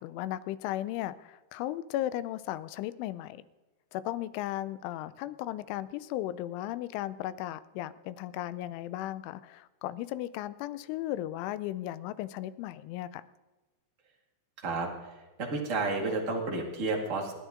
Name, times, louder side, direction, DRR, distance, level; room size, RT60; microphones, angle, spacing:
voice 1, 0.0-3.4 3.9-13.2, left 14 dB, 85° left, 15 dB, 3.1 m, -36 dB
voice 2, 15.4-17.3, right 3 dB, 60° right, -1 dB, 0.7 m, -31 dB
26.0 x 11.0 x 3.8 m, 1.2 s
omnidirectional pair, 5.4 m